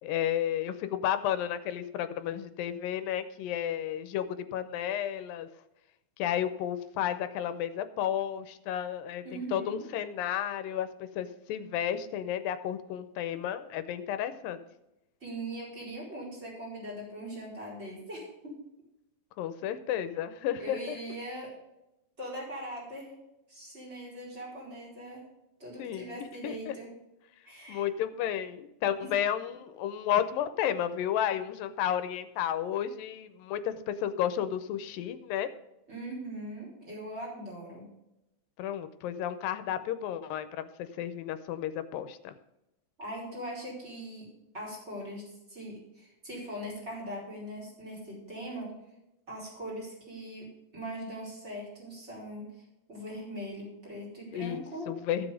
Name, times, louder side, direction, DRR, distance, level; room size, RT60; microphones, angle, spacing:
voice 1, 0.0-5.5 6.2-14.6 19.4-21.0 25.8-26.7 27.7-35.5 38.6-42.3 54.3-55.3, left 10 dB, 85° left, 11 dB, 2.5 m, -32 dB
voice 2, 9.2-9.8 15.2-18.6 20.6-21.6 22.2-23.1 23.5-25.2 25.6-26.9 27.4-27.8 29.0-29.1 35.9-37.9 43.0-44.3 44.5-48.7 49.3-50.5 50.7-52.5 52.9-54.9, right 1 dB, 20° right, -4 dB, 4.7 m, -41 dB
15.0 x 6.0 x 5.0 m, 0.90 s
omnidirectional pair, 4.0 m